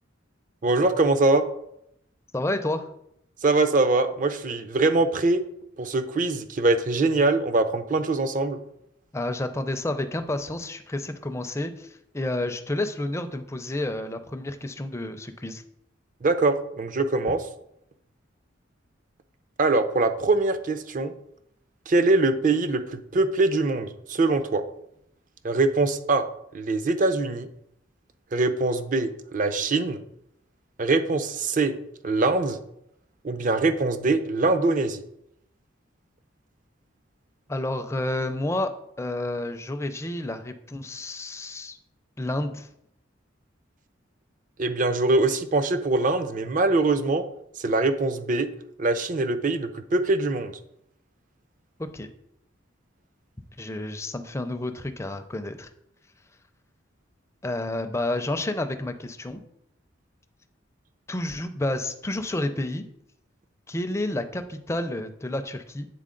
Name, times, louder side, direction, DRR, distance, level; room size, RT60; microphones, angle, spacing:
voice 1, 0.6-1.4 3.4-5.4 5.8-8.6 16.2-17.5 19.6-21.1 21.9-24.6 25.4-26.2 26.5-27.5 28.3-30.0 30.8-31.7 32.0-32.6 33.2-35.0 44.6-47.2 47.6-48.5 48.8-50.5, right 3 dB, 40° right, 9 dB, 0.5 m, -23 dB
voice 2, 2.3-2.9 9.1-15.6 37.5-38.7 39.0-41.8 42.2-42.7 51.8-52.1 53.6-55.7 57.4-59.4 61.1-62.8 63.7-65.9, left 1 dB, 15° left, 8 dB, 0.4 m, -30 dB
8.4 x 3.9 x 3.8 m, 0.76 s
head